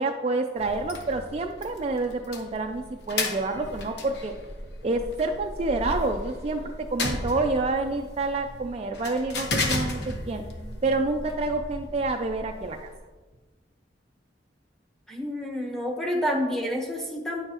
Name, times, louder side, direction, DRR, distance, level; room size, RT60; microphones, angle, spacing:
voice 1, 0.0-4.3 4.8-10.4 10.8-12.9, right 3 dB, 35° right, 4 dB, 0.4 m, -28 dB
sound 1, 0.6-13.0, left 2 dB, 60° left, 1.0 m, -35 dB
voice 2, 15.1-17.5, equal, ahead, -1 dB, 1.0 m, -29 dB
9.7 x 6.7 x 2.9 m, 1.3 s
head